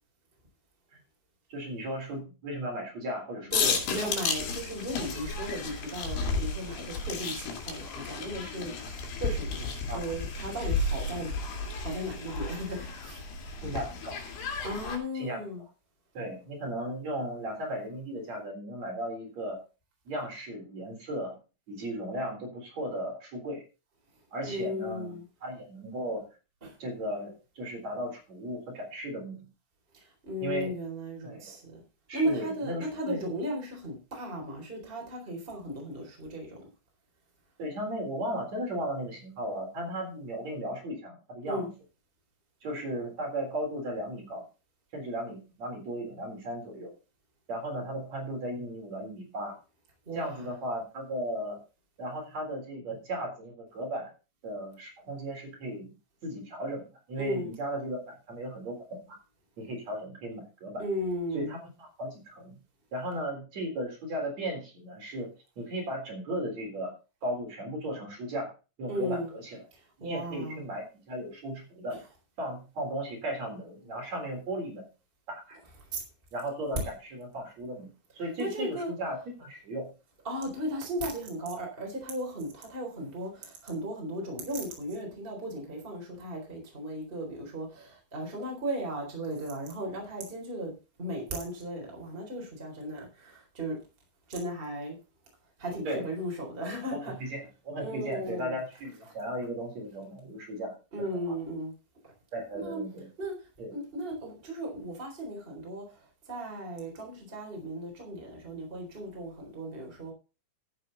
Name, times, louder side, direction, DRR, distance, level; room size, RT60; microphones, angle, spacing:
voice 1, 1.5-4.1 9.9-10.1 13.6-14.2 15.1-15.4 16.1-19.6 20.1-21.4 21.7-23.6 24.3-26.2 26.8-29.5 30.4-30.7 31.2-31.5 32.1-33.2 37.6-41.7 42.6-44.4 44.9-46.9 47.5-49.5 50.1-51.6 52.0-54.1 54.4-55.9 56.2-59.2 59.6-60.8 61.3-62.6 62.9-65.3 65.6-66.9 67.2-68.5 68.8-69.6 70.0-72.0 72.4-74.9 75.3-75.6 76.3-77.9 78.1-79.9 95.8-96.0 96.9-100.8 101.1-101.3 102.3-103.1 103.6-103.7, right 1 dB, 45° right, 4.9 m, -36 dB
sound 1, 3.5-15.0, left 4 dB, 90° left, 4.4 m, -33 dB
voice 2, 3.5-11.3 11.8-13.2 14.6-15.6 24.5-25.2 26.6-26.7 29.9-31.8 32.1-36.6 41.5-41.7 50.1-50.5 57.2-57.5 60.8-61.5 68.9-69.3 69.7-70.6 71.9-72.0 75.8-76.0 78.4-78.9 80.2-90.7 91.0-93.8 94.3-95.0 95.6-97.1 97.8-98.6 100.9-101.7 102.5-102.8 103.2-110.1, equal, 15° right, 3.9 m, -36 dB
12.5 x 8.8 x 4.0 m
omnidirectional pair, 4.5 m